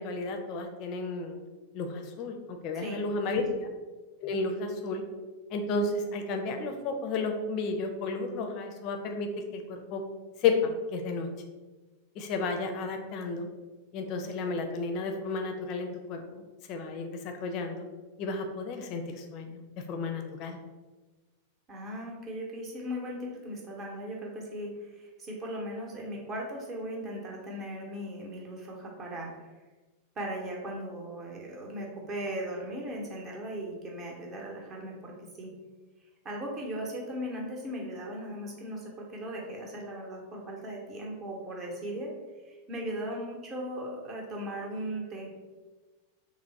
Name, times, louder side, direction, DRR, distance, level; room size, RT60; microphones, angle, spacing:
voice 1, 0.0-1.4 1.7-3.4 4.2-5.0 5.5-10.0 10.4-11.3 12.2-13.5 13.9-16.4 16.7-17.9 18.2-19.6 19.9-20.6, left 3 dB, 40° left, 4 dB, 0.5 m, -32 dB
voice 2, 21.7-29.5 30.2-35.5 36.2-42.1 42.4-45.3, equal, 25° right, -1 dB, 0.8 m, -38 dB
3.3 x 2.0 x 3.9 m, 1.3 s
figure-of-eight pair, 90°, 0 cm